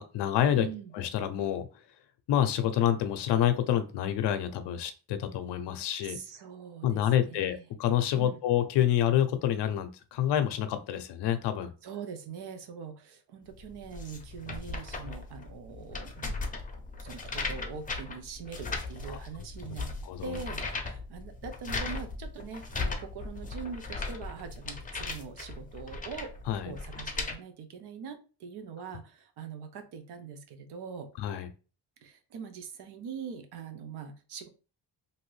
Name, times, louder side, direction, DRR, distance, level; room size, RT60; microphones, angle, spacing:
voice 1, 0.0-0.7 0.9-1.7 2.3-6.2 6.8-11.7 19.1-19.2 20.0-20.4 26.5-26.7 31.2-31.5, left 11 dB, 90° left, 9 dB, 0.6 m, -28 dB
voice 2, 0.6-0.9 6.0-7.7 8.1-8.4 11.8-16.4 17.0-19.9 20.2-26.3 26.6-31.1 32.0-34.5, right 6 dB, 75° right, 7 dB, 0.6 m, -42 dB
sound 1, 13.6-27.3, left 3 dB, 20° left, 0.5 m, -37 dB
2.8 x 2.6 x 3.1 m, 0.35 s
cardioid pair, 95°, 40 cm